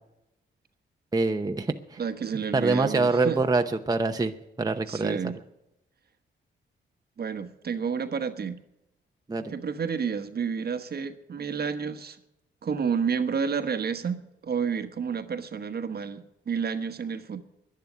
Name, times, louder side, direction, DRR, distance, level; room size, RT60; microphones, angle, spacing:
voice 1, 1.1-2.0 2.5-4.3 4.6-5.2 9.3-9.5, right 3 dB, 20° right, 5 dB, 0.8 m, -25 dB
voice 2, 2.0-3.4 4.9-5.4 7.2-8.6 9.5-12.2 12.6-17.4, right 6 dB, 50° right, 9 dB, 1.2 m, -30 dB
10.5 x 10.5 x 9.4 m, 0.89 s
cardioid pair, 80°, 20 cm